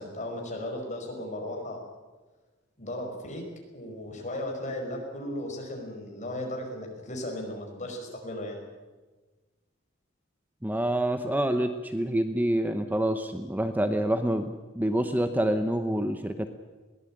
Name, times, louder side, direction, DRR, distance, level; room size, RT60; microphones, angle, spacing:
voice 1, 0.0-1.8 2.8-3.5 3.7-8.6, left 1 dB, 40° left, 2 dB, 5.3 m, -36 dB
voice 2, 10.6-16.5, right 1 dB, 10° right, 8 dB, 0.8 m, -27 dB
22.0 x 18.0 x 8.9 m, 1.3 s
head